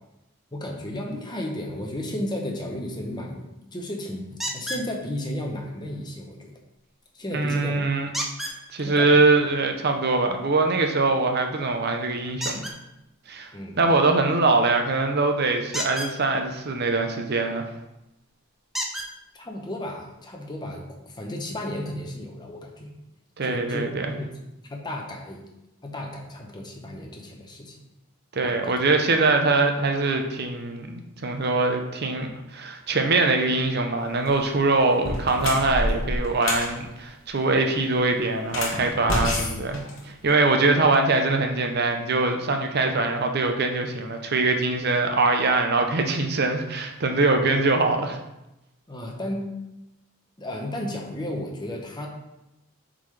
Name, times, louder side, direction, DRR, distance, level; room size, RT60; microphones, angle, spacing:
voice 1, 0.5-6.5 7.1-7.8 8.8-9.2 13.5-13.9 19.3-22.9 23.4-24.4 24.7-25.4 25.8-27.8 28.4-28.7 48.9-49.5 50.4-52.1, left 1 dB, 20° left, 1 dB, 0.8 m, -33 dB
sound 1, 4.4-4.9 8.1-8.6 12.4-12.7 15.7-16.1 17.8-17.9 18.7-19.1 20.1-20.2 20.7-20.8, equal, ahead, 0.5 m, -30 dB
voice 2, 7.3-8.1 8.5-12.7 13.3-13.5 13.8-17.7 23.4-24.1 28.3-48.2, right 3 dB, 45° right, 4 dB, 0.6 m, -23 dB
sound 2, 34.1-34.4 34.9-36.7 38.4-40.5, left 1 dB, 60° left, 1.1 m, -28 dB
7.8 x 3.8 x 3.3 m, 0.92 s
head